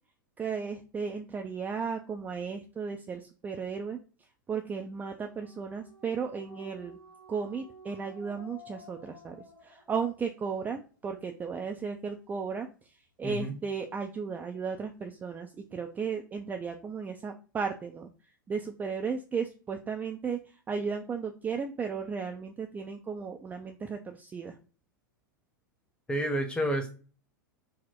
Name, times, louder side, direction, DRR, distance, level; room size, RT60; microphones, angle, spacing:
voice 1, 0.4-4.0 4.5-7.0 7.3-9.4 9.6-12.7 13.2-18.1 18.5-24.6, right 5 dB, 15° right, 4 dB, 0.4 m, -35 dB
sound 1, 5.2-10.4, equal, 80° right, 2.0 m, -52 dB
voice 2, 13.2-13.5 26.1-26.9, right 1 dB, 10° left, 4 dB, 0.9 m, -29 dB
4.2 x 2.1 x 4.4 m, 0.36 s
figure-of-eight pair, 95°, 11 cm